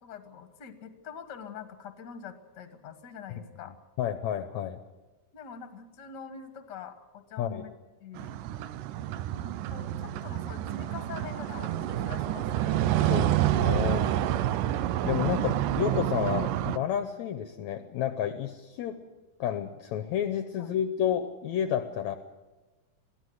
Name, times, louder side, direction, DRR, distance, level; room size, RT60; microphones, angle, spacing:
voice 1, 0.0-3.7 5.3-7.7 8.0-8.3 9.3-12.9 14.4-14.6 20.6-20.7, left 7 dB, 40° left, 8 dB, 1.6 m, -44 dB
voice 2, 3.7-4.8 7.4-7.6 13.1-14.1 15.0-19.0 19.4-22.2, left 10 dB, 70° left, 9 dB, 1.9 m, -30 dB
sound 1, 8.2-16.8, right 12 dB, 80° right, 2.3 m, -28 dB
22.5 x 15.5 x 7.9 m, 1.2 s
omnidirectional pair, 3.9 m